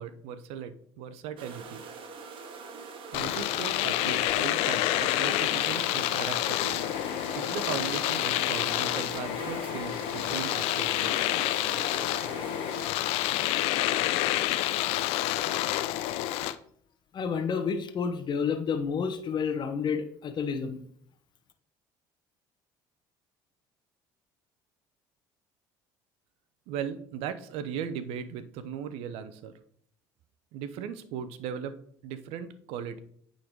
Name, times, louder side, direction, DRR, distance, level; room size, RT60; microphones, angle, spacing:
voice 1, 0.0-1.8 3.1-6.8 7.3-11.4 26.7-29.5 30.5-33.0, right 8 dB, 75° right, 12 dB, 0.8 m, -38 dB
sound 1, 1.4-12.9, right 5 dB, 55° right, 1.3 m, -42 dB
Domestic sounds home sounds, 3.1-16.5, left 14 dB, 75° left, 0.5 m, -28 dB
voice 2, 17.1-20.8, left 6 dB, 45° left, 6 dB, 1.1 m, -30 dB
8.7 x 4.0 x 4.7 m, 0.64 s
supercardioid pair, 75°, 11 cm